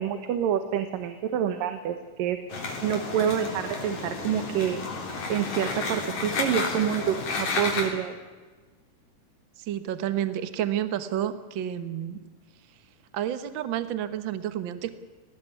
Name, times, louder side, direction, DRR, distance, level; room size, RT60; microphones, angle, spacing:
voice 1, 0.0-4.8 5.3-8.2, right 9 dB, 85° right, 9 dB, 2.9 m, -27 dB
sound 1, 2.5-7.9, left 4 dB, 85° left, 5.3 m, -31 dB
voice 2, 9.6-12.2 13.1-14.9, right 10 dB, 55° right, 12 dB, 1.4 m, -30 dB
18.5 x 18.5 x 9.7 m, 1.4 s
omnidirectional pair, 3.8 m